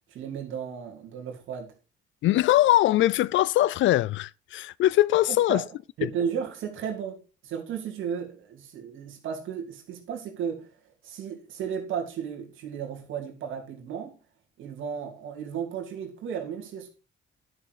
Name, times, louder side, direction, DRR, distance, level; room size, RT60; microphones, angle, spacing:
voice 1, 0.1-1.7 5.5-5.7 6.0-10.7 11.0-14.2 14.6-16.9, right 7 dB, 80° right, 2.9 m, -34 dB
voice 2, 2.2-5.6 6.0-6.1, left 14 dB, 75° left, 0.4 m, -22 dB
11.0 x 6.4 x 4.8 m
cardioid pair, 90°, 20 cm